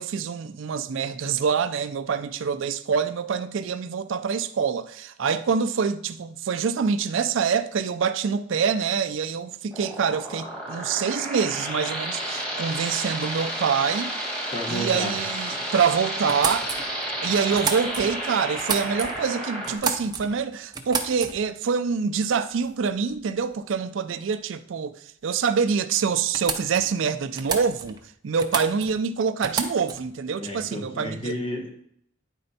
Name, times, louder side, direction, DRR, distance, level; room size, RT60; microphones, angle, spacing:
voice 1, 0.0-14.1 14.7-16.7 17.2-28.0 28.2-31.3, right 6 dB, 65° right, 0.4 m, -26 dB
sound 1, 9.7-19.7, right 1 dB, 5° left, 1.4 m, -31 dB
voice 2, 14.5-15.2 30.4-31.8, equal, 25° left, 1.2 m, -32 dB
sound 2, 16.3-18.2 18.5-19.3 19.6-20.4 20.7-21.6 22.6-22.7 23.1-23.5 25.5-25.6 25.8-25.9 26.3-27.0 27.4-28.1 28.4-29.0 29.4-30.1, right 5 dB, 20° right, 0.6 m, -31 dB
9.9 x 4.3 x 4.1 m
head